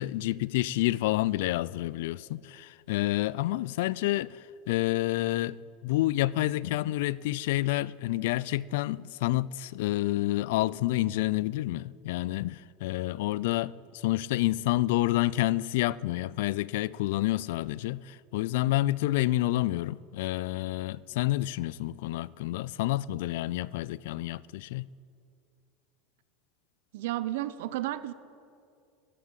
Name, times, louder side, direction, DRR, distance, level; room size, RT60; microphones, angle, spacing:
voice 1, 0.0-4.4 4.7-5.6 5.8-13.7 14.0-24.9, left 17 dB, 75° left, 0.3 m, -29 dB
voice 2, 26.9-28.1, right 15 dB, 75° right, 0.7 m, -32 dB
13.0 x 8.1 x 8.9 m
supercardioid pair, 140°, 0 cm